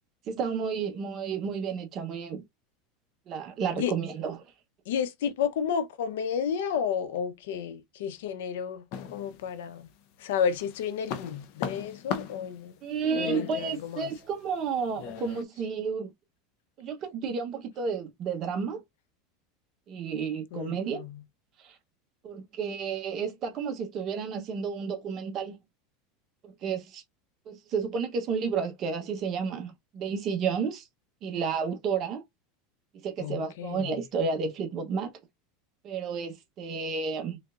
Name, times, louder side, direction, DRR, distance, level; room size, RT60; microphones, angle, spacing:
voice 1, 0.3-2.4 3.3-4.4 12.8-16.1 16.8-18.8 19.9-21.0 21.6-21.8 22.2-25.6 26.4-27.0 27.5-30.9 31.2-32.2 33.0-35.1 35.8-37.4, right 5 dB, 30° right, 1.0 m, -31 dB
voice 2, 4.9-9.9 10.2-12.8 13.1-14.1 20.5-21.2 33.2-33.9, left 7 dB, 85° left, 0.8 m, -32 dB
sound 1, 8.9-9.9 10.3-15.4, left 8 dB, 50° left, 0.7 m, -38 dB
3.7 x 3.4 x 2.5 m
supercardioid pair, 170°, 0 cm